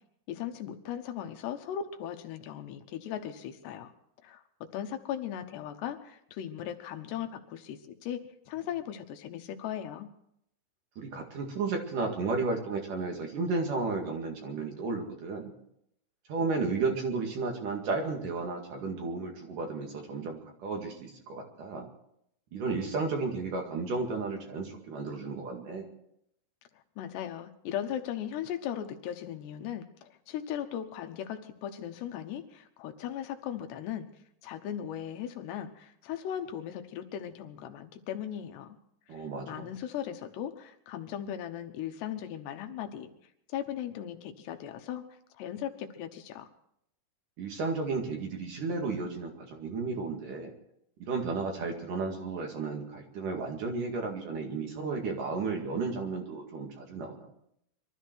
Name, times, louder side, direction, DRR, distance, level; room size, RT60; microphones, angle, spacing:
voice 1, 0.3-3.9 4.2-10.1 27.0-34.1 34.4-38.8 39.1-43.1 43.5-45.0 45.4-46.5, left 10 dB, 90° left, 7 dB, 3.3 m, -38 dB
voice 2, 11.0-15.5 16.3-21.9 22.5-25.9 39.1-39.7 47.4-50.5 51.0-57.3, right 4 dB, 55° right, 2 dB, 3.4 m, -33 dB
23.5 x 13.0 x 4.6 m, 0.75 s
omnidirectional pair, 4.7 m